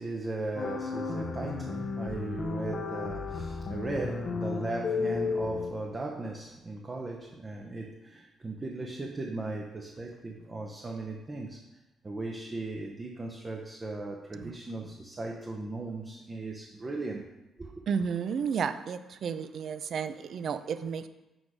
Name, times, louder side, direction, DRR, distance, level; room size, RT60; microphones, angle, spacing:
voice 1, 0.0-11.6 12.0-17.3 17.6-17.8, right 2 dB, 25° right, 1 dB, 0.7 m, -37 dB
sound 1, 0.6-5.7, left 4 dB, 45° left, 0.7 m, -33 dB
voice 2, 17.9-21.1, right 6 dB, 60° right, 12 dB, 0.4 m, -32 dB
6.4 x 4.7 x 4.9 m, 1.0 s
cardioid pair, 90°, 0 cm